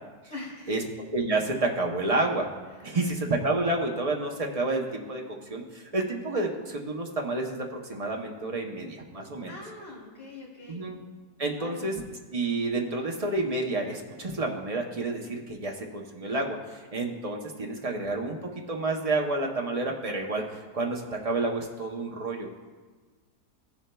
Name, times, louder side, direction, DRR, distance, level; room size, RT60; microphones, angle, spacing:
voice 1, 0.3-0.7 2.7-3.1 9.5-10.8 11.6-11.8, left 2 dB, 50° left, -6 dB, 3.2 m, -44 dB
voice 2, 1.1-2.5 2.8-9.5 10.7-11.0 11.4-11.9 12.3-18.4 18.7-20.4 20.7-22.5, right 2 dB, 50° right, 1 dB, 0.4 m, -29 dB
17.0 x 7.0 x 2.2 m, 1.4 s
omnidirectional pair, 1.8 m